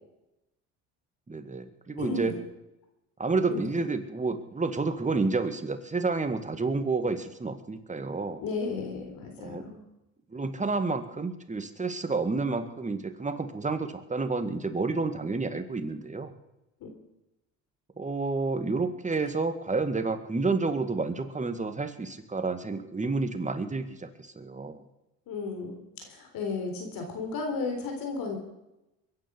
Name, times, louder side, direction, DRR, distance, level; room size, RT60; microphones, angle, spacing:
voice 1, 1.3-2.3 3.2-8.4 9.4-9.6 10.3-16.3 18.0-24.8, right 3 dB, 20° right, 8 dB, 2.0 m, -30 dB
voice 2, 2.0-2.4 3.5-3.7 8.4-9.8 16.8-16.9 25.3-28.4, left 4 dB, 65° left, 3 dB, 3.9 m, -34 dB
22.0 x 9.7 x 6.3 m, 0.94 s
supercardioid pair, 80°, 36 cm